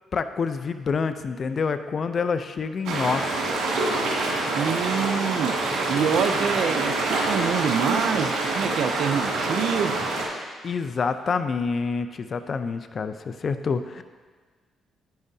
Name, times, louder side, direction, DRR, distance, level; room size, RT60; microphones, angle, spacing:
voice 1, 0.1-3.4 10.6-14.0, left 5 dB, 45° left, 10 dB, 0.5 m, -27 dB
sound 1, 2.9-10.2, right 2 dB, 85° right, 2.3 m, -26 dB
voice 2, 4.5-5.5 5.9-9.9, right 7 dB, 70° right, 10 dB, 0.5 m, -26 dB
10.5 x 9.8 x 2.8 m, 1.5 s
cardioid pair, 90°, 0 cm